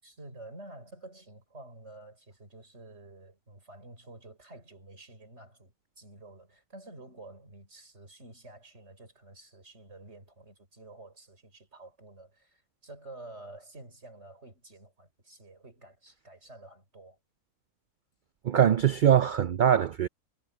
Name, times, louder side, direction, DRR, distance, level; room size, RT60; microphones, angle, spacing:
voice 1, 0.0-17.2, right 2 dB, 55° right, 6.4 m, -50 dB
voice 2, 18.4-20.1, right 9 dB, 70° right, 0.4 m, -22 dB
omnidirectional pair, 1.4 m